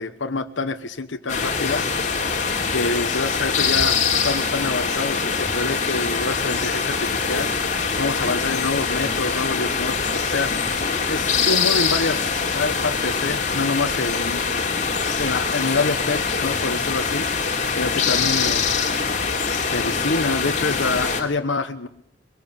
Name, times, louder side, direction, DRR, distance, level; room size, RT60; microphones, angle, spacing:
voice 1, 0.0-1.8 2.7-4.0 4.2-7.5 8.0-10.5 11.1-14.4 15.2-17.3 17.8-18.7 19.7-21.9, left 3 dB, 85° left, 6 dB, 1.2 m, -26 dB
sound 1, 1.3-21.2, left 5 dB, 40° left, 3.2 m, -23 dB
22.5 x 17.5 x 8.6 m, 0.72 s
head